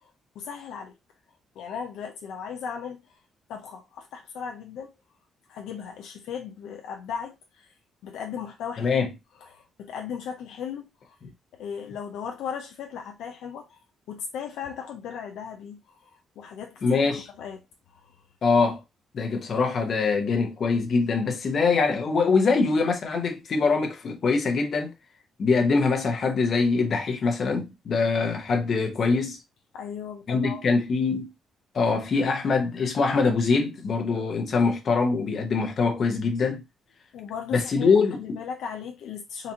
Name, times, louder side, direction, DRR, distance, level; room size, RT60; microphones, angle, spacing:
voice 1, 0.3-0.9 1.6-3.0 3.5-5.0 5.5-7.7 8.0-9.0 9.4-11.2 11.5-13.8 14.1-17.0 17.4-17.6 17.9-18.1 29.7-30.6 37.1-39.5, left 7 dB, 85° left, 0.7 m, -37 dB
voice 2, 8.8-9.1 16.8-17.2 18.4-18.8 19.1-24.9 25.4-29.4 30.3-31.3 31.7-36.6 37.5-38.2, left 4 dB, 50° left, 0.9 m, -23 dB
4.0 x 2.5 x 2.8 m
cardioid pair, 90°, 0 cm